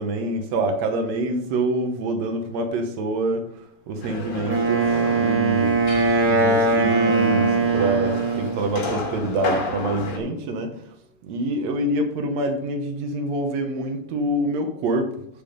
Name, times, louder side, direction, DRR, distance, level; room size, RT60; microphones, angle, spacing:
voice 1, 0.0-5.8 6.2-10.9 11.2-15.1, right 1 dB, 70° right, 6 dB, 1.7 m, -26 dB
sound 1, 4.0-10.2, left 2 dB, 65° left, 3.6 m, -32 dB
Wind instrument woodwind instrument, 4.5-8.6, right 3 dB, 85° right, 0.8 m, -20 dB
10.5 x 5.3 x 5.2 m, 0.72 s
omnidirectional pair, 4.3 m